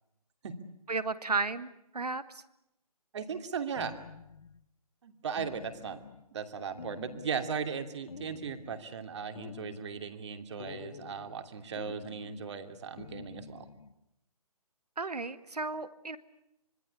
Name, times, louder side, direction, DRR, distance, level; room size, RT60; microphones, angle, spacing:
voice 1, 0.9-2.2 15.0-16.2, right 3 dB, 80° right, 12 dB, 1.8 m, -33 dB
voice 2, 3.1-4.0 5.0-6.0 6.3-13.7, right 6 dB, 45° right, 7 dB, 2.8 m, -37 dB
sound 1, 3.8-4.6 5.4-6.3 6.8-7.7 8.1-8.9 9.4-10.2 10.6-11.4 11.8-12.6 13.0-13.9, left 5 dB, 60° left, 1.5 m, -48 dB
25.5 x 22.0 x 8.4 m, 0.84 s
figure-of-eight pair, 150°, 20 cm